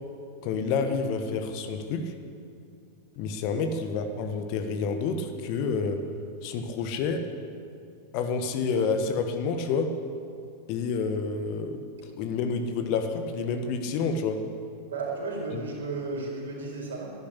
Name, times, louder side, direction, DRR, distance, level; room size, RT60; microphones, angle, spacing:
voice 1, 0.4-2.1 3.2-6.0 6.4-7.3 8.1-9.9 10.7-11.8 12.2-14.4 15.5-15.6, left 5 dB, 45° left, 7 dB, 1.3 m, -29 dB
voice 2, 14.9-17.1, right 3 dB, 65° right, -2 dB, 4.5 m, -33 dB
12.0 x 11.0 x 9.8 m, 2.5 s
figure-of-eight pair, 90°, 0 cm